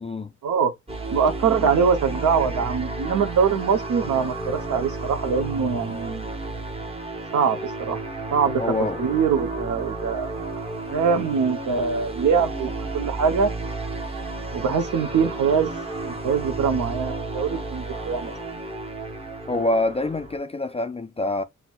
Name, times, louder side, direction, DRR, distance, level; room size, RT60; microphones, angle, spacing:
voice 1, 0.0-0.3 8.6-9.0 17.5-17.6 17.9-18.4 19.5-21.4, left 2 dB, 20° left, 0.3 m, -26 dB
sound 1, 0.9-20.4, right 2 dB, 20° right, 0.9 m, -32 dB
voice 2, 1.1-6.3 7.3-8.0 8.3-10.6 10.9-13.5 14.5-15.7 16.1-18.3, right 6 dB, 70° right, 0.7 m, -23 dB
5.7 x 2.1 x 2.2 m
cardioid pair, 95°, 32 cm